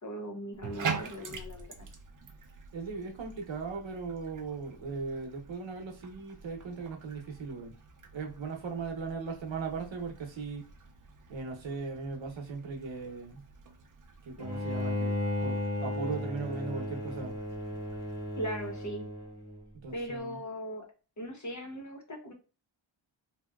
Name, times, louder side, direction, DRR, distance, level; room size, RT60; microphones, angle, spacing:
voice 1, 0.0-1.7 18.4-19.0 19.9-20.9 21.2-22.3, equal, 40° left, 0.7 m, -38 dB
Bathtub (filling or washing), 0.5-18.9, right 5 dB, 45° right, 0.5 m, -45 dB
voice 2, 2.7-7.8 8.1-10.7 11.3-13.5 14.3-17.4 19.7-20.4, right 4 dB, 75° right, 0.8 m, -38 dB
Bowed string instrument, 14.4-19.6, left 1 dB, 55° left, 1.5 m, -35 dB
2.9 x 2.8 x 2.2 m
wide cardioid pair, 115°, 46 cm